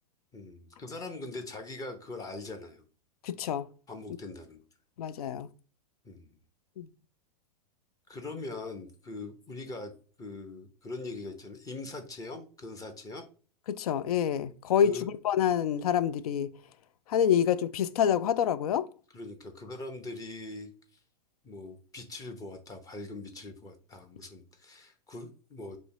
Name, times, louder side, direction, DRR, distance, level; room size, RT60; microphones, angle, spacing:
voice 1, 0.3-2.8 3.9-4.6 6.0-6.4 8.1-9.9 10.2-13.2 14.8-15.1 19.1-20.7 21.4-25.8, left 2 dB, 15° left, 0.6 m, -42 dB
voice 2, 3.2-3.7 5.0-5.5 6.8-6.9 13.7-16.5 17.1-18.9, left 9 dB, 65° left, 0.4 m, -27 dB
3.2 x 2.7 x 4.4 m
hypercardioid pair, 105°, 21 cm